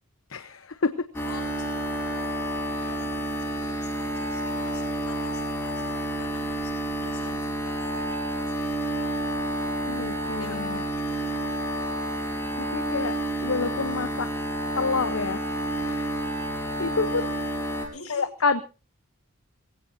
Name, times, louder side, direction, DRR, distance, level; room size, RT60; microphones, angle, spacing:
voice 1, 0.3-0.9 9.9-10.8 12.6-13.1 13.4-14.3 14.8-15.4 15.8-16.3 16.5-17.3 18.1-18.6, left 4 dB, 65° left, 10 dB, 0.9 m, -28 dB
voice 2, 1.1-9.4 10.4-11.4 17.0-17.2 17.9-18.2, left 3 dB, 80° left, 4 dB, 7.2 m, -47 dB
sound 1, 1.1-17.9, right 1 dB, 10° left, 4.3 m, -29 dB
22.0 x 16.5 x 2.8 m, 0.33 s
head